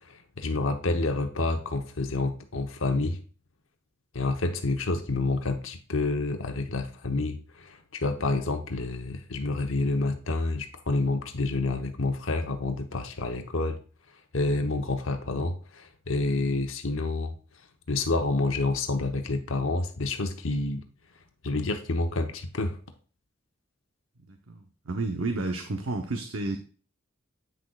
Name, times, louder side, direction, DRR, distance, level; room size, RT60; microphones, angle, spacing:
voice 1, 0.0-3.2 4.1-13.8 14.3-17.3 17.9-20.8 21.4-22.8, left 2 dB, 80° left, 5 dB, 0.9 m, -28 dB
voice 2, 24.3-26.6, right 2 dB, 85° right, 5 dB, 0.8 m, -31 dB
9.2 x 6.3 x 2.4 m, 0.39 s
head